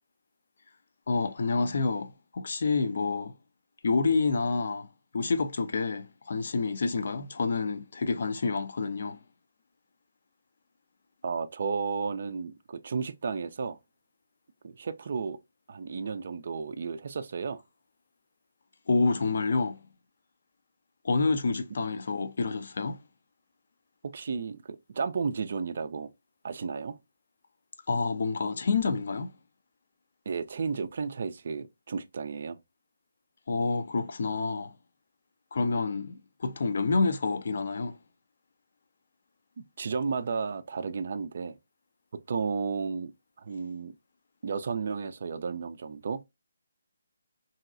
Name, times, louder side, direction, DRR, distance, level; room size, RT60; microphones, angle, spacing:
voice 1, 1.1-3.3 3.8-4.9 5.1-9.2 18.9-19.8 21.0-23.0 27.9-29.3 33.5-34.7 35.5-38.0, left 4 dB, 55° left, 0.4 m, -28 dB
voice 2, 11.2-13.8 14.6-15.4 15.7-17.6 24.0-26.1 26.4-27.0 30.3-32.6 39.8-41.6 42.3-43.1 43.4-43.9 44.4-46.2, right 5 dB, 50° right, 0.3 m, -33 dB
3.0 x 2.7 x 2.4 m
figure-of-eight pair, 150°, 0 cm